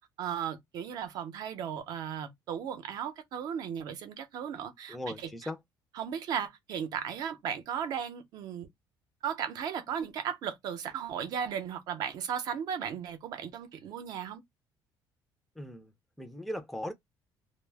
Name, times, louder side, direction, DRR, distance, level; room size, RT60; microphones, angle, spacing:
voice 1, 0.2-5.5 5.9-8.7 9.2-14.4, right 8 dB, 55° right, 0.6 m, -36 dB
voice 2, 4.9-5.6 15.6-15.9 16.2-16.9, left 1 dB, ahead, 0.4 m, -38 dB
2.1 x 2.0 x 3.3 m
cardioid pair, 155°, 8 cm